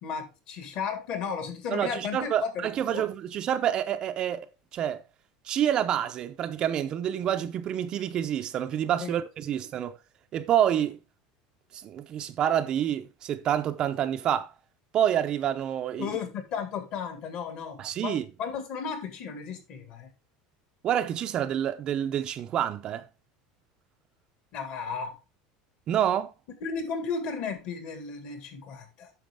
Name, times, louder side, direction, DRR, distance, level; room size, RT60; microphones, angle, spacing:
voice 1, 0.0-3.1 9.0-9.2 16.0-20.1 24.5-25.2 26.6-29.1, left 6 dB, 45° left, 1.9 m, -34 dB
voice 2, 1.7-5.0 5.4-10.0 10.3-11.0 11.7-14.5 14.9-16.2 17.8-18.3 20.8-23.0 25.9-26.3, right 10 dB, 30° right, 0.5 m, -28 dB
9.0 x 6.1 x 3.5 m
cardioid pair, 170°, 3 cm